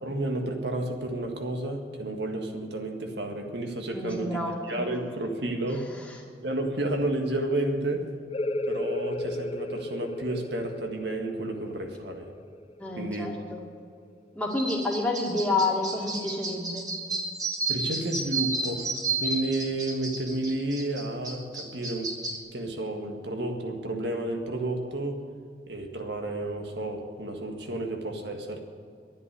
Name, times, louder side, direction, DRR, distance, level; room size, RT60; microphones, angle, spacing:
voice 1, 0.0-4.4 4.7-5.9 6.4-8.1 8.7-12.3 13.0-13.3 17.7-22.2 22.5-25.2 25.7-28.6, right 1 dB, 75° right, 3 dB, 1.7 m, -31 dB
voice 2, 3.9-4.9 12.8-13.6 14.3-16.9, left 2 dB, 10° left, -2 dB, 2.2 m, -29 dB
sound 1, 8.3-13.7, left 1 dB, 30° left, 0.6 m, -35 dB
sound 2, 14.5-22.4, right 3 dB, 20° right, 1.5 m, -32 dB
11.0 x 9.7 x 9.7 m, 2.2 s
head